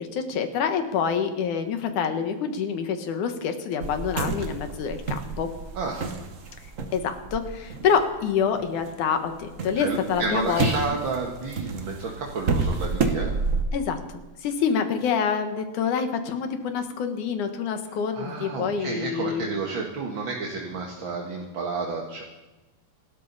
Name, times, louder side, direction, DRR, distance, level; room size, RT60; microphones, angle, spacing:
voice 1, 0.0-5.5 6.9-10.7 13.7-14.0 14.4-19.5, left 6 dB, 70° left, 7 dB, 2.7 m, -26 dB
sound 1, 3.8-8.9 9.3-13.6, right 4 dB, 85° right, 0.7 m, -30 dB
voice 2, 5.7-6.1 9.7-13.3 18.1-22.2, right 4 dB, 45° right, -1 dB, 2.0 m, -31 dB
26.5 x 13.0 x 4.1 m, 1.1 s
omnidirectional pair, 3.7 m